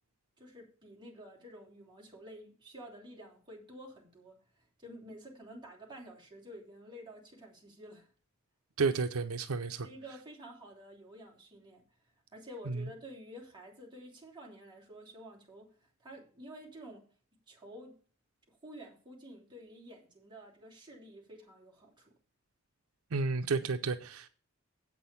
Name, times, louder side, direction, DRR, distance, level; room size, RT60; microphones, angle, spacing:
voice 1, 0.4-8.1 9.8-11.8 12.3-15.7 16.0-17.0 17.5-17.9 18.5-22.1, equal, 20° right, 3.4 m, -50 dB
voice 2, 8.8-9.9 12.7-12.8 23.1-24.3, right 4 dB, 85° right, 0.6 m, -31 dB
8.1 x 6.1 x 7.0 m
head